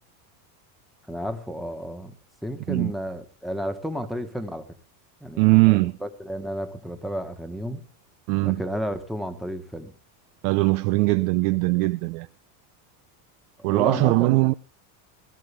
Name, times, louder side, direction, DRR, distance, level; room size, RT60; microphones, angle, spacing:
voice 1, 1.1-2.1 2.4-4.7 5.2-7.8 8.4-9.9 13.6-14.4, equal, ahead, 1.3 m, -32 dB
voice 2, 5.4-6.0 8.3-8.6 10.4-12.3 13.6-14.5, right 23 dB, 85° right, 0.7 m, -20 dB
17.0 x 13.0 x 3.4 m
supercardioid pair, 140°, 47 cm